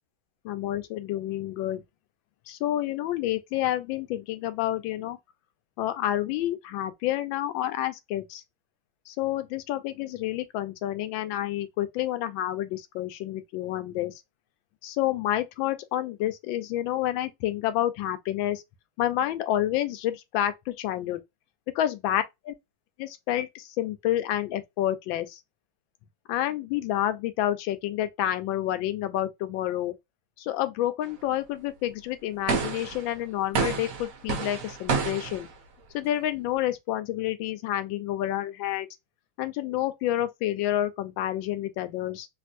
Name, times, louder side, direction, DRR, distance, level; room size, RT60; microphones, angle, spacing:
voice 1, 0.4-1.8 2.5-5.2 5.8-8.4 9.1-14.1 14.8-18.6 19.0-21.2 21.7-22.2 23.0-25.4 26.3-29.9 30.4-35.5 35.9-38.9 39.4-42.3, left 13 dB, 75° left, 1.3 m, -29 dB
sound 1, 32.5-33.1 33.6-35.5, right 5 dB, 65° right, 0.8 m, -29 dB
3.4 x 2.6 x 2.5 m
omnidirectional pair, 2.3 m